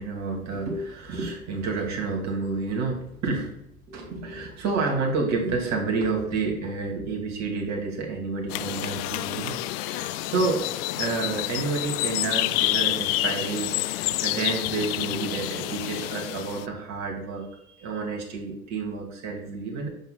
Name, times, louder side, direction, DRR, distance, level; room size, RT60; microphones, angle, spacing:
voice 1, 0.0-3.6 3.9-10.7 10.9-19.9, right 4 dB, 40° right, 1 dB, 2.4 m, -29 dB
sound 1, 8.5-16.7, left 16 dB, 45° left, 0.4 m, -28 dB
7.9 x 6.1 x 2.3 m, 0.76 s
hypercardioid pair, 85°, 42 cm